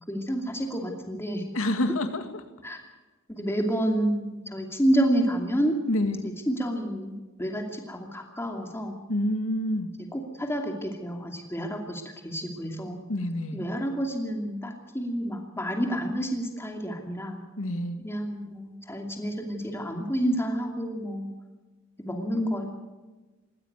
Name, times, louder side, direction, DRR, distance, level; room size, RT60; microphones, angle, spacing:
voice 1, 0.1-1.5 2.6-2.8 3.3-5.7 6.2-9.0 10.1-13.0 13.5-17.4 18.0-21.3 22.0-22.7, equal, 10° left, 2 dB, 2.6 m, -29 dB
voice 2, 1.5-2.4 5.9-6.2 9.1-9.9 13.1-13.6 17.6-18.0, left 1 dB, 80° left, 8 dB, 2.1 m, -27 dB
20.5 x 16.0 x 8.1 m, 1.2 s
head